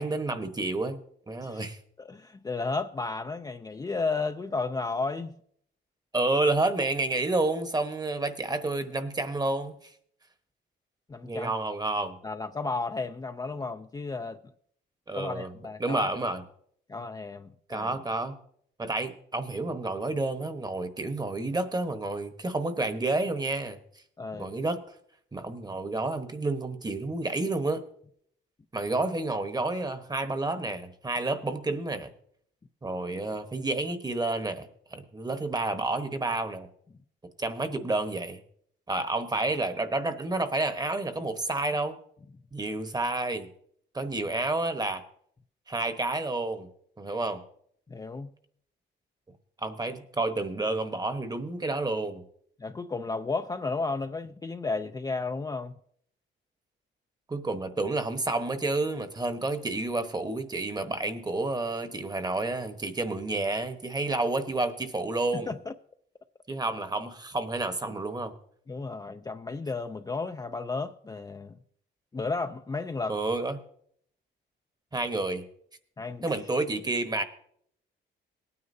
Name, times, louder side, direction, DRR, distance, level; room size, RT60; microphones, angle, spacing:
voice 1, 0.0-1.8 6.1-9.9 11.2-12.2 15.1-15.5 15.8-16.4 17.7-18.3 18.8-23.8 24.3-24.8 25.3-27.8 28.7-32.1 32.8-36.7 37.4-38.4 38.9-41.9 42.5-43.5 43.9-45.0 45.7-46.7 47.0-47.4 49.6-52.2 57.3-65.5 66.5-68.3 73.1-73.6 74.9-75.5 76.2-77.2, right 2 dB, 20° right, 1.1 m, -30 dB
voice 2, 2.0-5.3 11.1-11.5 12.2-14.4 15.1-16.1 16.9-17.9 24.2-24.5 47.9-48.3 52.6-55.7 65.3-65.7 68.7-71.6 72.1-73.2 76.0-76.2, left 3 dB, 20° left, 0.5 m, -33 dB
18.5 x 9.5 x 2.7 m
cardioid pair, 90°, 20 cm